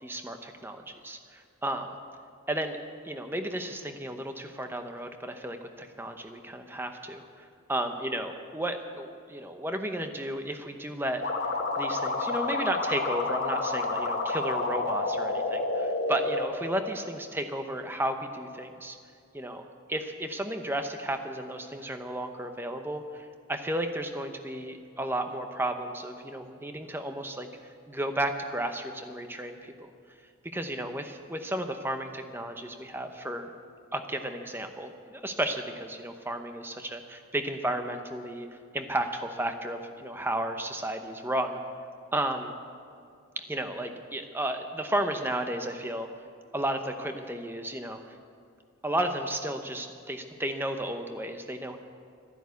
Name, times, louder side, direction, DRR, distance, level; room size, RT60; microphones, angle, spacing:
voice 1, 0.0-1.9 2.5-2.8 3.0-11.2 11.8-19.0 19.3-19.6 19.9-29.9 30.5-33.5 33.9-38.5 38.7-41.6 42.1-42.5 43.4-46.1 46.5-48.2 48.8-51.8, right 1 dB, 10° right, 6 dB, 0.8 m, -33 dB
sound 1, 11.2-16.5, left 3 dB, 50° left, 1.3 m, -29 dB
12.5 x 11.0 x 8.3 m, 2.3 s
head